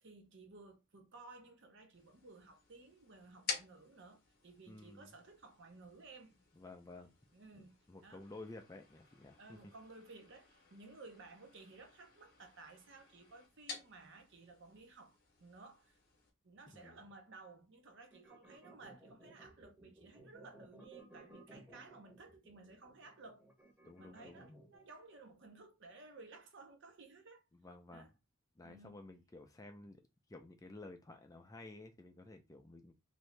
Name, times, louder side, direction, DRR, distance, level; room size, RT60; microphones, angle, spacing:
voice 1, 0.0-6.3 7.3-8.2 9.4-15.1 15.4-16.0 16.4-23.5 24.0-27.4 27.9-28.1 28.6-29.0, right 3 dB, 55° right, 0.6 m, -56 dB
sound 1, 1.9-16.3, left 5 dB, 40° left, 0.8 m, -52 dB
voice 2, 4.7-5.1 6.6-7.1 7.5-9.6 16.7-17.0 23.9-24.6 27.5-28.1 28.6-30.0 30.3-32.9, left 2 dB, 15° left, 0.3 m, -53 dB
sound 2, 18.1-24.8, right 1 dB, 5° right, 0.8 m, -59 dB
2.8 x 2.6 x 3.2 m
head